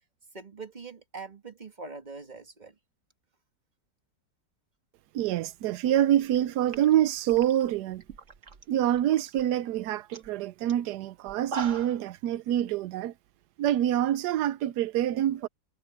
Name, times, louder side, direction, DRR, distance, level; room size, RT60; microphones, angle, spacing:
voice 1, 0.3-2.7, right 4 dB, 25° right, 1.7 m, -43 dB
voice 2, 5.1-8.0 8.7-13.1 13.6-15.5, right 12 dB, 75° right, 1.2 m, -26 dB
sound 1, 6.2-6.4 6.7-8.6 9.0-9.4 9.8-9.9 10.1-10.3 10.7-10.8 11.3-12.1, right 4 dB, 45° right, 1.8 m, -40 dB
omnidirectional pair, 1.8 m